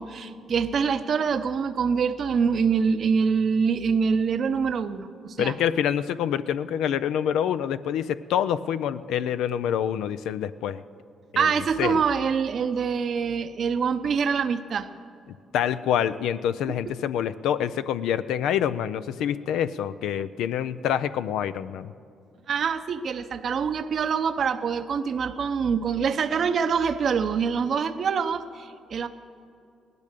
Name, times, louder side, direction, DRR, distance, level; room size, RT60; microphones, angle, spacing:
voice 1, 0.0-5.6 11.4-14.9 22.5-29.1, right 6 dB, 55° right, 9 dB, 0.6 m, -25 dB
voice 2, 5.4-10.8 11.3-11.5 11.8-12.0 15.5-21.9, left 9 dB, 85° left, 13 dB, 0.4 m, -26 dB
17.5 x 12.0 x 6.7 m, 2.6 s
cardioid pair, 90°, 0 cm